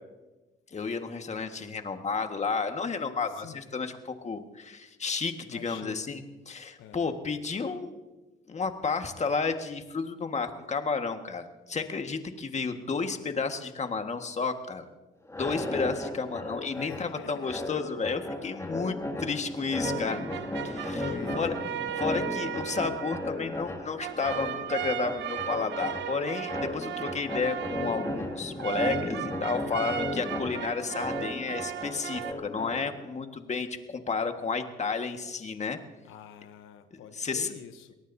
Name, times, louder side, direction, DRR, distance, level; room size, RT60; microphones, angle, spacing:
voice 1, 0.7-6.2 6.5-8.0 8.5-14.9 15.3-20.2 20.6-21.1 21.4-21.5 22.0-35.8 36.9-37.5, left 4 dB, 35° left, 6 dB, 1.6 m, -32 dB
voice 2, 3.3-3.6 5.5-6.2 6.8-7.2 16.7-17.6 21.0-21.6 29.8-30.2 36.0-37.9, left 8 dB, 85° left, 9 dB, 0.9 m, -45 dB
sound 1, 15.3-33.1, left 2 dB, 15° left, 2.3 m, -36 dB
sound 2, 19.8-32.3, right 11 dB, 65° right, 0.9 m, -36 dB
24.0 x 18.5 x 2.7 m, 1.1 s
cardioid pair, 90°, 20 cm